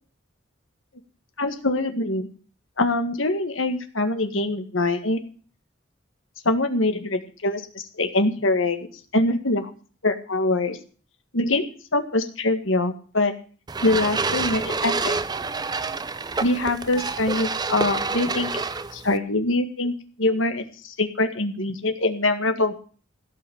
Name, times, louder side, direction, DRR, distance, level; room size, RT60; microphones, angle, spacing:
voice 1, 1.4-2.3 2.8-5.2 6.5-8.9 9.1-9.7 10.0-10.8 11.3-11.7 11.9-13.3 13.8-15.1 16.4-18.5 18.9-19.9 20.2-22.7, left 2 dB, 75° left, 7 dB, 1.8 m, -24 dB
sound 1, 13.7-19.2, right 4 dB, 20° right, 0.5 m, -28 dB
16.5 x 5.9 x 8.5 m, 0.41 s
head